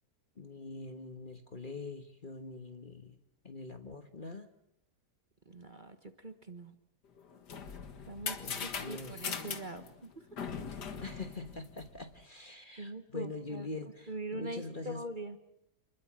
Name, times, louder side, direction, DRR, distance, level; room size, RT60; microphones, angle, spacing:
voice 1, 0.4-3.2 3.4-4.5 8.4-9.5 11.0-15.0, left 3 dB, 30° left, 7 dB, 1.4 m, -44 dB
voice 2, 5.5-6.0 6.2-6.7 8.1-10.1 12.8-13.7 14.1-15.4, right 2 dB, 30° right, 8 dB, 1.5 m, -42 dB
sound 1, 7.2-12.2, left 6 dB, 80° left, 2.3 m, -41 dB
28.5 x 21.5 x 7.5 m, 0.80 s
omnidirectional pair, 1.8 m